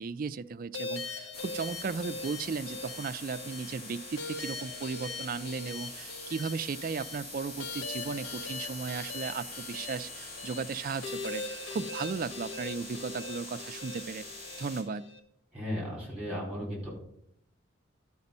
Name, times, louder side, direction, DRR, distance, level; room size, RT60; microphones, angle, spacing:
voice 1, 0.0-14.3 14.6-15.1, right 5 dB, 45° right, 14 dB, 0.3 m, -36 dB
sound 1, 0.7-15.2, left 3 dB, 75° left, 1.1 m, -41 dB
sound 2, 1.3-14.8, left 2 dB, 45° left, 2.7 m, -44 dB
voice 2, 15.5-16.9, equal, 5° right, -4 dB, 4.5 m, -35 dB
11.5 x 5.1 x 5.4 m, 0.76 s
head